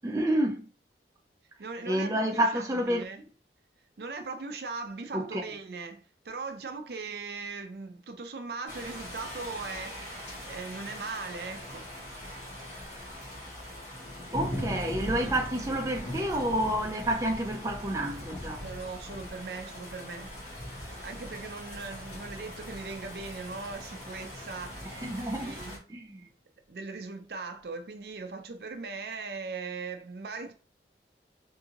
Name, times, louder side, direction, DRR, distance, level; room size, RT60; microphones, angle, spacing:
voice 1, 0.0-0.7 1.8-3.0 5.1-5.4 14.3-18.6 24.9-25.6 25.9-26.3, right 1 dB, 20° right, 0.5 m, -29 dB
voice 2, 1.6-3.2 4.0-11.9 18.6-20.3 21.0-25.1 25.3-25.8 26.7-30.5, right 4 dB, 65° right, 0.5 m, -39 dB
sound 1, 8.7-25.8, left 1 dB, 40° left, 1.4 m, -40 dB
3.6 x 2.7 x 2.9 m
head